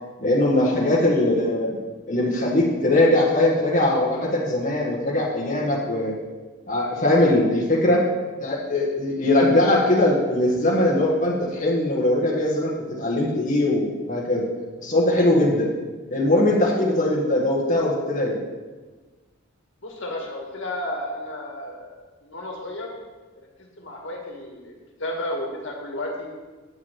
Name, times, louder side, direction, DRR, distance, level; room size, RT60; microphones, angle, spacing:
voice 1, 0.2-1.7 2.1-6.2 6.7-8.0 8.4-14.4 14.8-15.7 16.1-18.4, left 1 dB, 35° left, -5 dB, 1.7 m, -21 dB
voice 2, 19.8-22.9 23.4-23.5 23.8-24.7 25.0-26.3, left 1 dB, 60° left, 0 dB, 2.1 m, -32 dB
9.3 x 5.9 x 7.6 m, 1.3 s
head